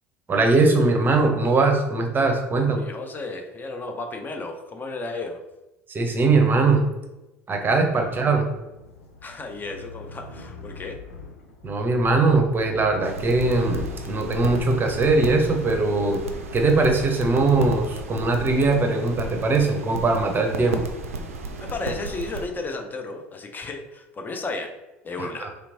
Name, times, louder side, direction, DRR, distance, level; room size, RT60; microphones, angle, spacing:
voice 1, 0.3-2.8 5.9-6.9 7.5-8.5 11.6-16.2 16.5-20.8 25.2-25.5, right 3 dB, 25° right, 4 dB, 0.6 m, -21 dB
voice 2, 2.6-5.4 9.2-11.0 21.6-24.7 25.0-25.5, left 3 dB, 25° left, 4 dB, 0.4 m, -33 dB
sound 1, 8.0-17.5, left 3 dB, 80° left, 0.5 m, -41 dB
sound 2, 13.0-22.5, right 2 dB, 80° right, 0.4 m, -34 dB
3.2 x 2.9 x 2.6 m, 1.0 s
figure-of-eight pair, 70°, 8 cm